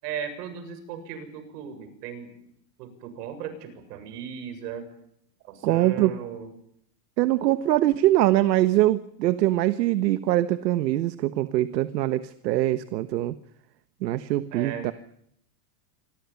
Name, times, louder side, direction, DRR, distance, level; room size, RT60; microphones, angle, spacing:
voice 1, 0.0-2.4 2.8-4.9 5.4-6.5 14.5-14.9, right 8 dB, 70° right, 10 dB, 7.5 m, -37 dB
voice 2, 5.6-6.1 7.2-13.3 14.0-14.9, right 15 dB, 85° right, 12 dB, 1.5 m, -23 dB
27.5 x 23.0 x 7.2 m, 0.72 s
supercardioid pair, 150°, 50 cm